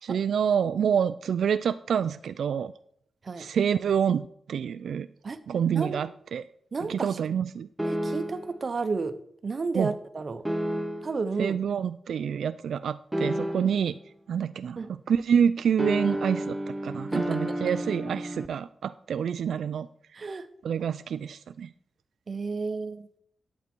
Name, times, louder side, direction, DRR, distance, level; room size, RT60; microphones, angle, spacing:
voice 1, 0.0-2.7 3.4-5.1 5.5-6.4 6.9-7.7 9.7-9.9 11.4-14.0 14.3-14.8 15.1-19.9 20.6-21.7, right 7 dB, 80° right, 12 dB, 0.3 m, -27 dB
voice 2, 6.7-7.2 7.8-9.2 9.4-10.4 11.0-11.6 14.8-14.9 17.1-17.4 20.1-20.5 22.3-23.1, right 4 dB, 40° right, 10 dB, 0.8 m, -32 dB
sound 1, 7.8-8.6 10.4-11.3 13.1-14.0 15.8-18.5, equal, 10° right, 0.5 m, -31 dB
11.0 x 8.1 x 4.4 m, 0.66 s
wide cardioid pair, 140°, 0 cm